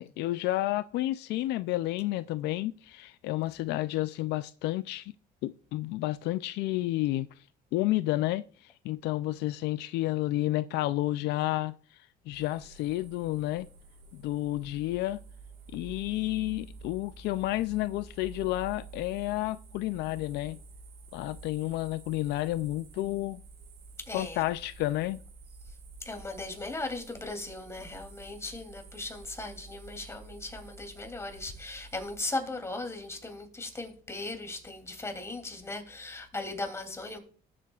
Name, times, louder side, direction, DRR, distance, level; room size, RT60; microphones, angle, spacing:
voice 1, 0.0-5.1 5.4-7.3 7.7-11.7 12.3-13.7 14.1-15.2 15.7-20.6 21.1-23.4 24.1-25.2, left 16 dB, 85° left, 0.4 m, -31 dB
sound 1, 12.3-32.2, right 4 dB, 80° right, 4.0 m, -50 dB
voice 2, 24.1-24.4 26.0-37.2, left 2 dB, 15° left, 2.7 m, -38 dB
19.0 x 7.5 x 2.3 m
cardioid pair, 110°, 17 cm